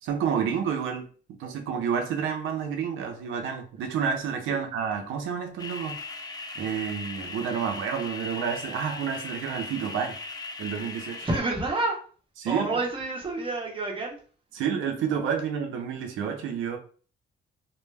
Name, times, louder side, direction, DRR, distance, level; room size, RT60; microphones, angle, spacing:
voice 1, 0.0-1.1 1.4-6.0 6.6-10.2 10.6-11.3 12.4-12.7 14.5-16.8, right 7 dB, 85° right, 4 dB, 0.6 m, -29 dB
sound 1, 5.6-11.4, left 3 dB, 20° left, 0.5 m, -38 dB
voice 2, 11.2-12.0 12.4-14.2, right 2 dB, 25° right, -1 dB, 1.0 m, -28 dB
2.1 x 2.1 x 3.2 m, 0.41 s
cardioid pair, 90°, 20 cm